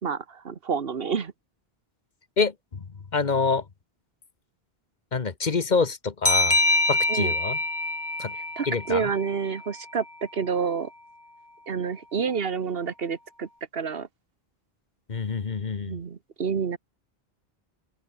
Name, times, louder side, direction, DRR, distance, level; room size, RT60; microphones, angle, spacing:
voice 1, 0.0-1.3 7.1-7.3 8.3-10.9 11.7-14.1 15.9-16.8, right 6 dB, 70° right, 1.4 m, -29 dB
voice 2, 3.1-3.6 5.1-6.6 6.9-7.6 8.2-8.3 8.7-9.1 15.1-15.9, left 4 dB, 45° left, 1.2 m, -26 dB
sound 1, 6.2-9.6, left 1 dB, 25° left, 2.7 m, -25 dB
open air
omnidirectional pair, 1.0 m